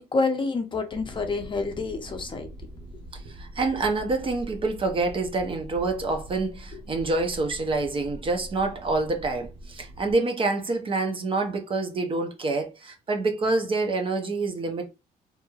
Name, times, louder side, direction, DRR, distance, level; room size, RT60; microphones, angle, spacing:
voice 1, 0.0-2.5 6.7-6.8, left 3 dB, 30° left, 0.6 m, -28 dB
sound 1, 0.9-10.1, right 1 dB, 55° right, 1.5 m, -43 dB
voice 2, 3.1-14.9, right 3 dB, 30° right, 0.6 m, -27 dB
2.9 x 2.8 x 2.3 m
cardioid pair, 110°, 17 cm